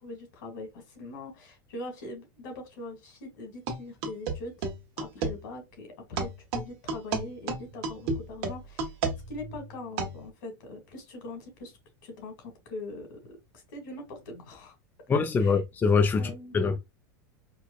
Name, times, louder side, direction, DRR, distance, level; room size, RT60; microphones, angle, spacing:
voice 1, 0.0-4.7 5.0-8.9 9.3-11.8 12.0-13.4 13.7-14.8 15.4-15.6 16.1-16.8, left 2 dB, 80° left, 2.1 m, -42 dB
sound 1, 3.7-5.4 6.2-10.3, right 4 dB, 55° right, 1.1 m, -32 dB
voice 2, 15.1-16.2 16.5-16.8, left 5 dB, 20° left, 0.5 m, -23 dB
4.6 x 2.3 x 2.4 m
supercardioid pair, 125°, 11 cm